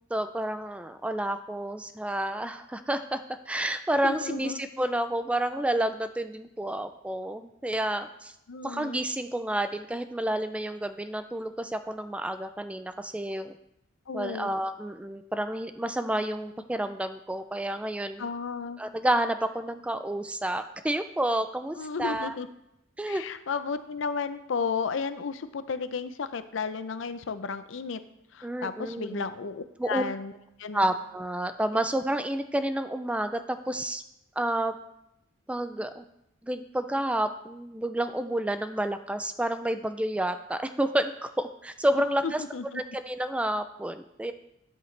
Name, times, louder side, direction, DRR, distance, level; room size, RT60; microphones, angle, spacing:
voice 1, 0.1-8.3 8.6-13.5 14.1-18.3 18.8-22.4 23.0-23.2 28.4-29.2 29.8-30.0 30.7-34.0 34.4-34.7 35.5-36.0 36.4-42.4 42.7-44.3, right 1 dB, 5° right, 10 dB, 0.3 m, -30 dB
voice 2, 4.0-4.6 8.5-9.0 14.1-14.5 18.2-18.8 21.8-22.5 23.1-28.0 28.3-30.3 30.6-30.9 42.2-42.8, left 5 dB, 65° left, 12 dB, 0.5 m, -33 dB
9.5 x 7.9 x 3.3 m, 0.82 s
head